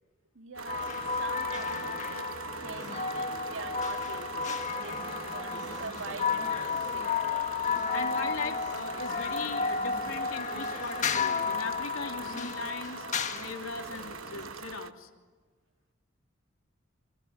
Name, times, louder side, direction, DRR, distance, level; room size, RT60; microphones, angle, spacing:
voice 1, 0.4-7.2, right 3 dB, 75° right, 1.8 m, -44 dB
sound 1, 0.6-14.9, right 5 dB, 90° right, 1.1 m, -43 dB
sound 2, 0.7-14.5, left 5 dB, 35° left, 1.5 m, -33 dB
voice 2, 7.9-13.1 13.3-15.1, left 4 dB, 85° left, 3.0 m, -39 dB
27.5 x 26.0 x 7.8 m
head